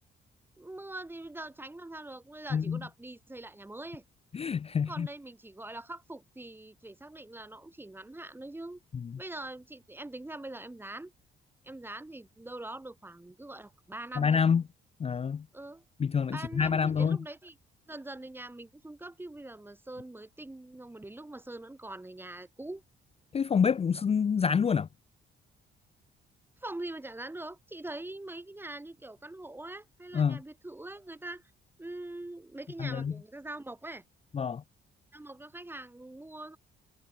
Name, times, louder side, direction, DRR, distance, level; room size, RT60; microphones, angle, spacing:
voice 1, 0.6-4.0 4.9-8.8 9.2-11.1 11.6-14.4 15.5-15.8 16.3-17.5 17.9-22.8 26.6-31.4 31.8-34.0 35.1-36.6, right 2 dB, 10° right, 1.4 m, -43 dB
voice 2, 4.3-5.1 8.9-9.1 14.2-14.6 15.0-15.5 16.0-17.2 23.3-24.9 30.1-30.4 32.8-33.1 34.3-34.6, left 6 dB, 30° left, 0.5 m, -27 dB
cardioid pair, 90°, 20 cm